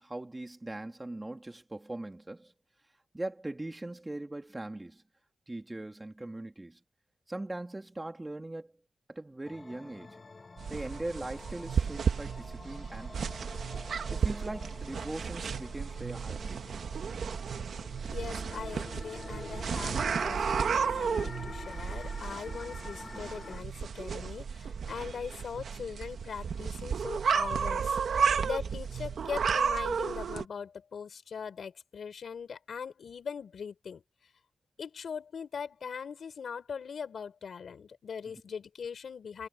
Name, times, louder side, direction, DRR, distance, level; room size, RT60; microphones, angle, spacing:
voice 1, 0.0-2.5 3.1-5.0 5.5-6.8 7.3-8.7 9.1-10.2 10.7-13.5 14.1-16.6 23.0-23.3, right 2 dB, 15° right, 2.6 m, -40 dB
sound 1, 9.4-23.6, left 3 dB, 35° left, 1.1 m, -47 dB
sound 2, 10.6-30.4, right 6 dB, 75° right, 1.5 m, -33 dB
voice 2, 18.1-34.0 34.8-39.5, left 6 dB, 70° left, 4.4 m, -41 dB
wide cardioid pair, 120°, 0 cm